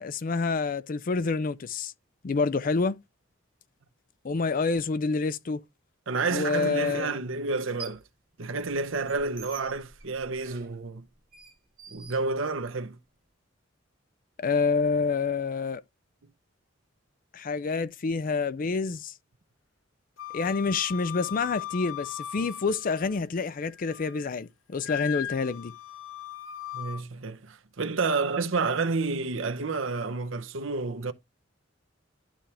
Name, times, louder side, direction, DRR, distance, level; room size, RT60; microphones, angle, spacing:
voice 1, 0.0-1.9 2.2-3.0 4.2-5.6 6.3-7.2 14.4-15.8 17.3-19.1 20.3-25.7, left 4 dB, 45° left, 0.4 m, -28 dB
voice 2, 6.1-8.0 8.4-11.1 11.9-13.0 26.7-31.1, right 4 dB, 80° right, 0.8 m, -30 dB
sound 1, 6.3-6.4 7.5-8.1 8.5-12.9, right 3 dB, 50° right, 1.4 m, -48 dB
Wind instrument woodwind instrument, 20.2-23.2 23.6-24.3 24.8-27.0, left 11 dB, 85° left, 0.8 m, -38 dB
11.5 x 4.3 x 3.4 m
head